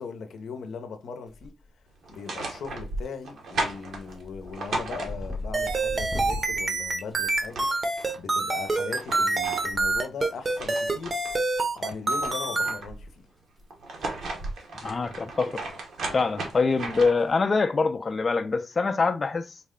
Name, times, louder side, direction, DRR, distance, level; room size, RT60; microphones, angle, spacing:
voice 1, 0.0-1.5 2.1-11.2 11.7-13.3, left 5 dB, 80° left, 0.6 m, -39 dB
sound 1, 1.3-1.8 2.2-2.7 3.0-3.3 3.6-8.1 9.4-9.6 10.8-11.6 11.9-12.1 12.6-12.7 13.0-13.1 13.4-13.6 13.9-14.0 15.6-15.8, left 1 dB, ahead, 0.7 m, -39 dB
sound 2, 2.0-5.6 7.0-7.1 7.3-8.2 8.7-11.4 11.8-13.1 13.7-17.3, right 2 dB, 80° right, 1.1 m, -35 dB
sound 3, 5.5-12.8, right 2 dB, 35° right, 0.7 m, -26 dB
voice 2, 14.8-15.6 16.1-19.6, left 4 dB, 35° left, 0.4 m, -25 dB
4.0 x 2.2 x 3.6 m
cardioid pair, 95°, 0 cm